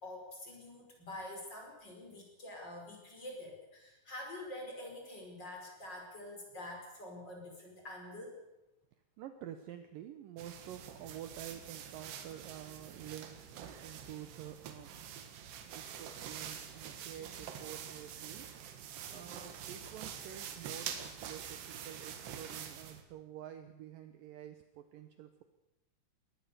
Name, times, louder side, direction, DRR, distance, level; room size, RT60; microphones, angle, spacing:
voice 1, 0.0-8.4 17.1-17.4 19.1-19.5, left 1 dB, 25° left, 1 dB, 5.7 m, -47 dB
voice 2, 9.2-15.2 15.7-18.6 19.1-25.4, right 11 dB, 70° right, 9 dB, 2.3 m, -49 dB
sound 1, 10.4-23.0, right 8 dB, 85° right, 3.9 m, -46 dB
21.5 x 18.5 x 6.9 m, 0.96 s
omnidirectional pair, 4.8 m